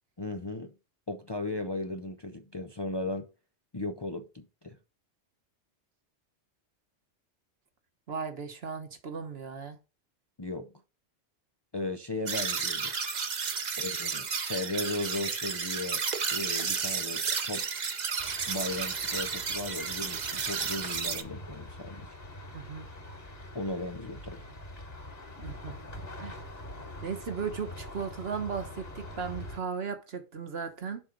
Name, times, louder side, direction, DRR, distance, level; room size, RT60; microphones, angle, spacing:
voice 1, 0.2-0.7 1.1-3.3 3.7-4.8 10.4-10.7 11.7-12.9 13.8-16.0 16.3-17.6 18.5-22.1 23.5-24.5, left 2 dB, 30° left, 0.5 m, -36 dB
voice 2, 8.1-9.8 22.5-22.9 25.4-25.8 26.2-26.4 27.0-31.0, right 6 dB, 60° right, 1.4 m, -36 dB
sound 1, 12.3-21.2, right 5 dB, 45° right, 0.8 m, -32 dB
sound 2, 18.2-29.6, left 1 dB, 55° left, 2.8 m, -44 dB
7.0 x 3.9 x 5.2 m
omnidirectional pair, 1.2 m